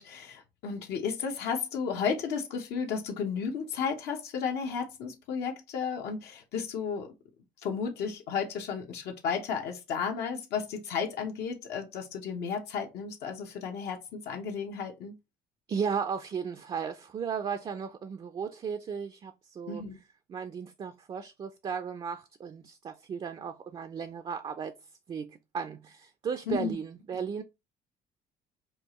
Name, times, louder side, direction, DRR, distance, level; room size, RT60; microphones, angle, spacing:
voice 1, 0.0-7.1 7.6-15.1 19.7-20.0 26.5-26.8, left 6 dB, 80° left, 0.8 m, -33 dB
voice 2, 15.7-19.8 20.3-24.7 25.1-27.4, right 6 dB, 30° right, 0.4 m, -35 dB
4.4 x 2.4 x 2.9 m
cardioid pair, 110°, 17 cm